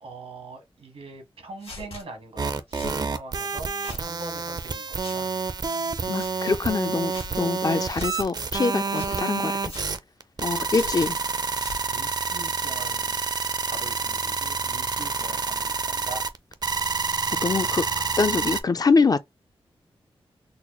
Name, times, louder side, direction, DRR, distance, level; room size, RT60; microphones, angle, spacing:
voice 1, 0.0-5.3 11.9-13.2 13.6-16.2, right 3 dB, 75° right, 1.2 m, -42 dB
sound 1, 1.6-2.0 2.7-3.0 3.7-4.1 5.0-5.2 6.0-6.3 7.1-7.3 7.9-8.1 8.9-9.2 9.7-9.9 10.7-11.1 11.5-11.8, left 4 dB, 75° left, 1.4 m, -41 dB
sound 2, 2.4-18.6, right 4 dB, 40° right, 0.5 m, -28 dB
voice 2, 6.1-9.7 10.4-11.2 17.3-17.9 18.2-19.2, left 4 dB, 40° left, 0.4 m, -24 dB
4.0 x 2.1 x 3.0 m
wide cardioid pair, 75°, 10 cm